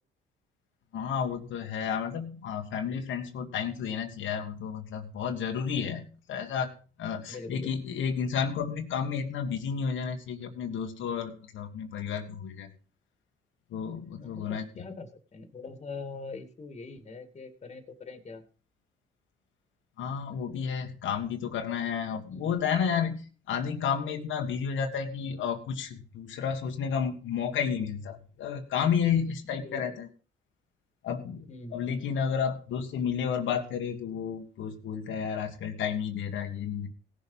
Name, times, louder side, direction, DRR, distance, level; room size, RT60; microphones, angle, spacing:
voice 1, 0.9-6.7 7.0-12.7 13.7-14.6 20.0-30.1 31.0-31.4 31.7-36.9, left 7 dB, 80° left, 3 dB, 1.7 m, -31 dB
voice 2, 7.3-7.7 14.2-18.4 22.3-22.5 29.6-29.9 31.5-32.0, left 3 dB, 35° left, 7 dB, 2.1 m, -43 dB
17.0 x 6.7 x 5.4 m, 0.39 s
cardioid pair, 90°, 20 cm